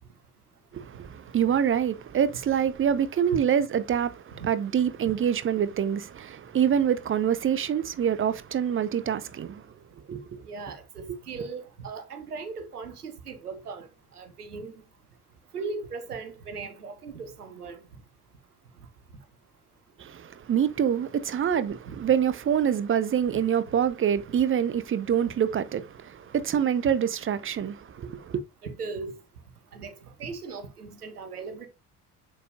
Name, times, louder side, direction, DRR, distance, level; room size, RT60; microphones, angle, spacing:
voice 1, 0.7-9.6 10.1-10.4 11.1-11.2 20.0-28.4, right 8 dB, 30° right, 0.7 m, -26 dB
voice 2, 10.5-13.9 14.1-14.8 15.5-17.8 21.9-22.0 28.6-29.1 29.7-29.9 30.2-31.7, right 4 dB, 85° right, 1.0 m, -38 dB
6.7 x 6.5 x 2.6 m
figure-of-eight pair, 50°, 45 cm